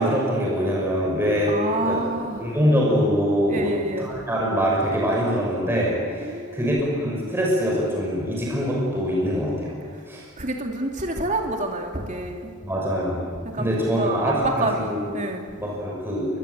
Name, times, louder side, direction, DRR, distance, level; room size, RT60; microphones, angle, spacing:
voice 1, 0.0-1.5 1.8-2.0 2.4-3.7 4.0-9.7 10.1-10.2 12.6-13.2 13.6-15.0 15.6-16.3, equal, 10° right, -4 dB, 5.9 m, -23 dB
voice 2, 1.5-2.5 3.5-4.1 6.2-6.7 10.4-12.5 13.4-15.5, right 2 dB, 35° right, 2 dB, 2.8 m, -28 dB
27.0 x 22.5 x 8.3 m, 2.1 s
head